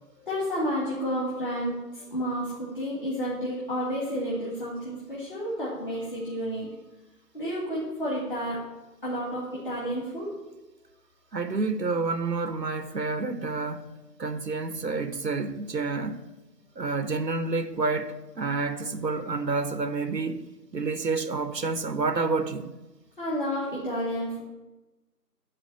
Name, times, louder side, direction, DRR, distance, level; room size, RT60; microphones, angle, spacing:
voice 1, 0.2-6.7 7.3-8.6 9.0-10.3 23.2-24.4, equal, 30° left, 2.2 m, -31 dB
voice 2, 11.3-13.9 14.2-16.3 16.8-20.5 20.7-22.7, right 3 dB, 85° right, 0.9 m, -29 dB
11.0 x 4.2 x 7.7 m
figure-of-eight pair, 165°, 49 cm